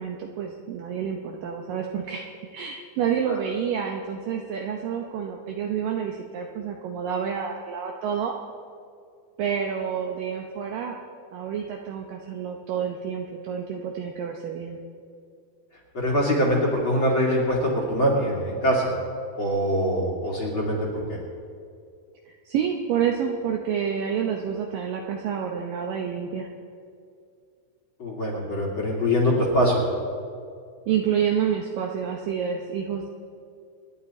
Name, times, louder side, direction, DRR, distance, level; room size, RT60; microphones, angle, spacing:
voice 1, 0.0-2.3 2.5-8.3 9.4-11.0 11.3-14.8 22.3-26.5 30.9-33.1, right 8 dB, 90° right, 1 dB, 1.9 m, -28 dB
voice 2, 15.9-18.9 19.4-21.0 28.0-29.8, equal, 35° left, -2 dB, 2.5 m, -23 dB
27.5 x 10.5 x 4.3 m, 2.3 s
omnidirectional pair, 5.2 m